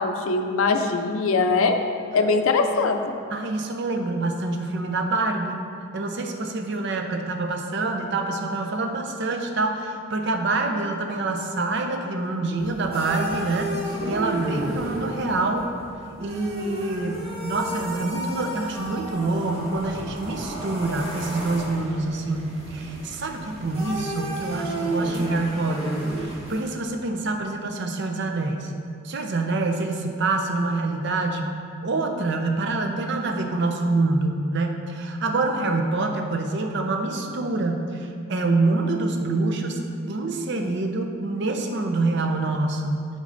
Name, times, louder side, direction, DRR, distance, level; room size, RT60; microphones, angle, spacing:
voice 1, 0.0-1.8 2.1-3.1, left 4 dB, 70° left, 6 dB, 0.5 m, -22 dB
voice 2, 3.3-5.6 5.9-13.7 14.0-15.7 16.2-28.7 29.0-31.6 31.8-39.8 40.1-43.1, right 2 dB, 55° right, 4 dB, 0.6 m, -26 dB
sound 1, 12.6-26.7, right 1 dB, 30° right, 1.3 m, -33 dB
6.4 x 5.3 x 3.9 m, 2.4 s
head